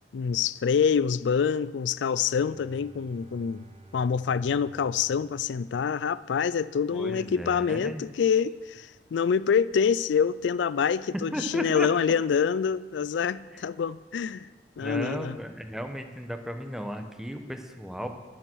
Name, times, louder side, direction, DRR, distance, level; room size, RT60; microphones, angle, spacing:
voice 1, 0.1-3.6 3.9-14.5 14.8-15.4, left 6 dB, 85° left, 18 dB, 0.4 m, -26 dB
Bowed string instrument, 2.2-6.4, right 2 dB, 35° right, 0.8 m, -52 dB
voice 2, 6.9-8.0 11.1-11.9 13.5-13.6 14.8-18.1, equal, 5° right, 6 dB, 1.0 m, -35 dB
12.0 x 10.5 x 6.2 m, 1.3 s
head